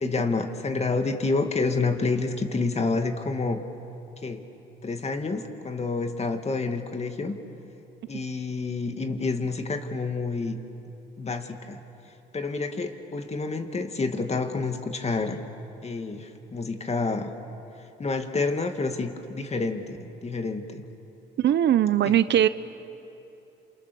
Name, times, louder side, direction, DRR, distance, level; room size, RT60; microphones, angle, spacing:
voice 1, 0.0-3.6 4.2-4.4 4.8-7.4 8.1-10.6 11.2-11.8 12.3-15.4 15.8-17.3 18.0-20.0 20.2-20.8 22.1-22.2, left 3 dB, 35° left, 6 dB, 2.2 m, -28 dB
voice 2, 21.4-22.5, right 11 dB, 60° right, 14 dB, 0.7 m, -20 dB
28.5 x 27.5 x 7.0 m, 2.9 s
cardioid pair, 90°, 20 cm